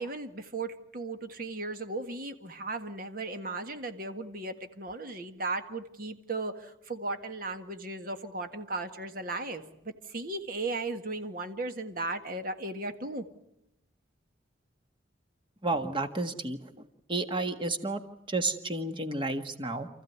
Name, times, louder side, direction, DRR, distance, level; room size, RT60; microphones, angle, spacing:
voice 1, 0.0-13.2, right 2 dB, 45° right, 7 dB, 1.7 m, -36 dB
voice 2, 15.6-16.6 17.1-18.0 18.3-19.9, right 2 dB, 25° right, 7 dB, 1.6 m, -31 dB
29.0 x 15.0 x 9.4 m, 0.83 s
head